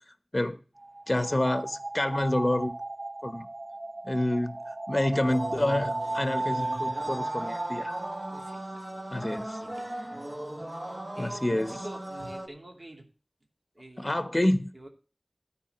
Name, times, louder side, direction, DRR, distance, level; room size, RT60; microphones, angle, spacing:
sound 1, 0.8-8.6, right 2 dB, 80° right, 0.5 m, -35 dB
voice 1, 1.1-2.8 3.2-3.5 4.0-8.0 9.1-9.6 11.2-11.8 14.0-14.7, left 1 dB, 35° left, 1.1 m, -28 dB
sound 2, 5.3-12.5, right 1 dB, 40° right, 1.3 m, -38 dB
voice 2, 8.3-9.1 9.6-9.9 10.8-13.1 13.7-14.3 14.7-14.9, right 1 dB, 60° right, 2.6 m, -47 dB
13.0 x 4.7 x 7.8 m
wide cardioid pair, 45°, 0 cm